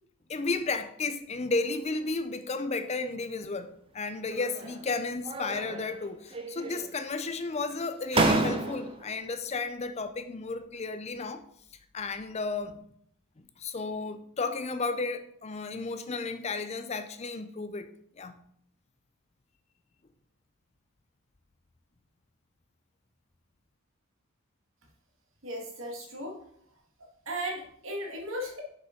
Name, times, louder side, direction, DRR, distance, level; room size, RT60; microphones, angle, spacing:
voice 1, 0.3-11.4 11.9-12.9 13.6-17.9 18.2-18.4, left 3 dB, 30° left, 0.5 m, -33 dB
sound 1, 4.3-4.9 5.2-6.0 6.3-7.1 7.7-7.8 8.1-9.1, right 2 dB, 25° right, 0.7 m, -30 dB
voice 2, 25.4-26.3 27.3-28.6, right 1 dB, 65° right, 2.0 m, -36 dB
6.4 x 5.2 x 5.1 m
head